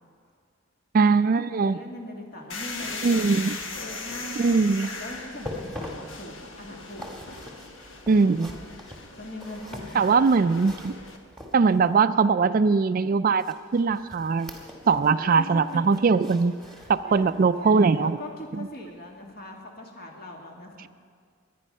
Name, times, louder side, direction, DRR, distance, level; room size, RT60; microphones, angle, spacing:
voice 1, 0.9-1.8 3.0-3.6 4.4-4.9 8.1-8.5 9.9-10.9 11.5-13.4 13.7-14.5 14.9-16.6 16.9-18.2 18.5-18.7, right 4 dB, 45° right, 13 dB, 0.3 m, -21 dB
voice 2, 1.6-4.6 5.0-7.0 9.2-10.3 14.8-20.9, left 1 dB, 50° left, 0 dB, 2.2 m, -41 dB
sound 1, 2.5-11.2, left 3 dB, 75° left, 1.4 m, -39 dB
sound 2, 5.3-12.0 13.4-15.2 15.5-17.4 17.9-18.0 18.6-18.7, left 1 dB, ahead, 1.8 m, -43 dB
22.5 x 9.3 x 5.5 m, 2.1 s
head